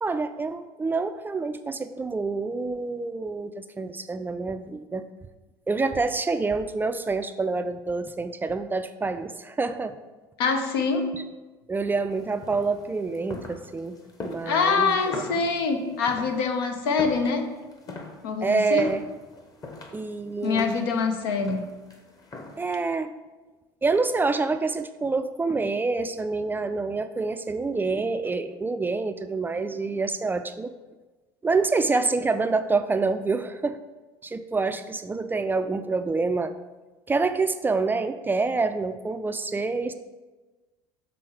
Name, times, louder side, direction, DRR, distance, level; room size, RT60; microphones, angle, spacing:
voice 1, 0.0-5.1 5.7-10.0 11.7-14.0 14.2-15.2 18.4-19.0 19.9-20.8 22.6-23.1 23.8-30.7 31.4-33.8 34.2-36.5 37.1-39.9, right 3 dB, 15° right, 9 dB, 0.3 m, -27 dB
voice 2, 10.4-11.1 14.5-17.4 18.2-18.9 20.4-21.6, left 4 dB, 80° left, 5 dB, 0.8 m, -24 dB
sound 1, 12.1-22.8, left 2 dB, 30° left, 1.0 m, -42 dB
6.2 x 3.4 x 4.6 m, 1.2 s
hypercardioid pair, 75°, 12 cm